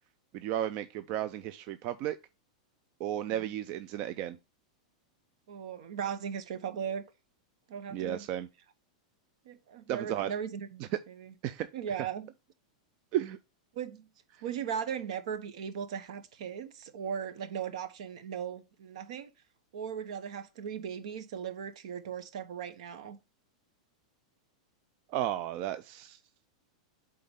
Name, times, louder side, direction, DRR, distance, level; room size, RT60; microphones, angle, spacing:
voice 1, 0.3-2.2 3.0-4.4 7.9-8.5 9.9-10.3 11.4-11.7 12.0-12.1 13.1-13.4 25.1-26.2, right 12 dB, 35° right, 0.3 m, -33 dB
voice 2, 5.5-7.0 7.7-8.3 9.4-11.3 11.7-12.3 13.7-14.1 14.4-19.3 19.7-23.2, right 8 dB, 65° right, 1.1 m, -38 dB
8.1 x 3.8 x 3.6 m
supercardioid pair, 165°, 4 cm